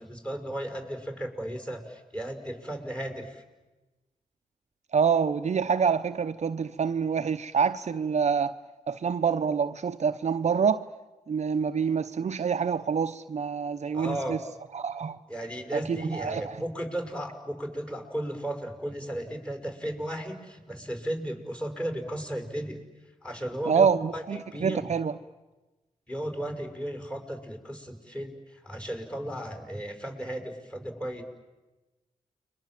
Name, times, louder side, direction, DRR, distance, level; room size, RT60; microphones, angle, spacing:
voice 1, 0.0-3.4 13.9-14.4 15.3-22.8 23.2-24.9 26.1-28.4 28.6-31.2, right 1 dB, 5° left, 5.7 m, -35 dB
voice 2, 4.9-8.6 8.9-10.8 11.3-14.4 14.7-15.2 15.7-16.5 23.7-25.1, right 6 dB, 50° right, 0.8 m, -26 dB
29.5 x 23.0 x 7.6 m
cardioid pair, 65°, 14 cm